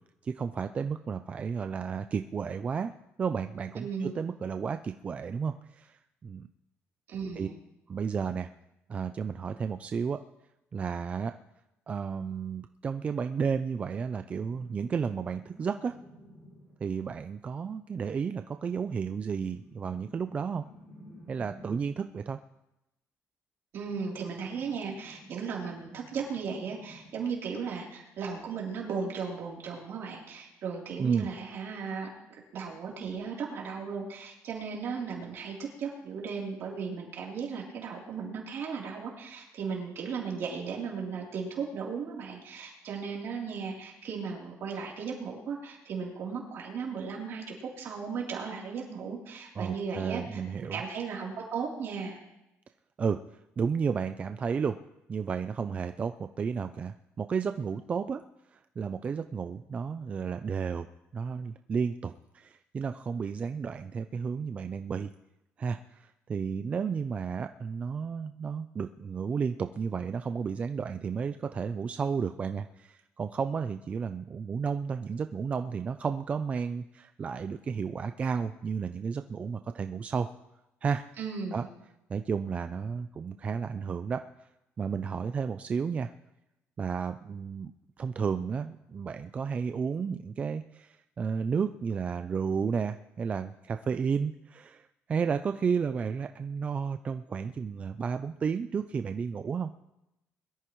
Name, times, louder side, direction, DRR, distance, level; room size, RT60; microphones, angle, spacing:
voice 1, 0.2-2.9 3.2-6.5 7.4-7.5 7.9-8.5 8.9-10.2 10.7-11.4 11.9-15.9 16.8-20.6 21.3-22.4 31.0-31.3 49.6-50.8 53.0-54.8 55.1-58.2 58.5-60.9 61.1-65.1 65.6-80.3 80.8-81.0 81.5-81.6 82.1-84.3 84.8-86.1 86.8-87.7 88.0-99.7, right 6 dB, 25° right, 9 dB, 0.4 m, -32 dB
voice 2, 3.8-4.1 7.1-7.5 23.7-52.2 81.2-81.7, right 5 dB, 50° right, -2 dB, 3.3 m, -36 dB
sound 1, 14.4-16.9 18.5-22.0 23.8-27.4 29.0-29.1, equal, 30° left, 6.7 m, -54 dB
22.0 x 13.5 x 3.1 m, 0.90 s
cardioid pair, 170°, 5 cm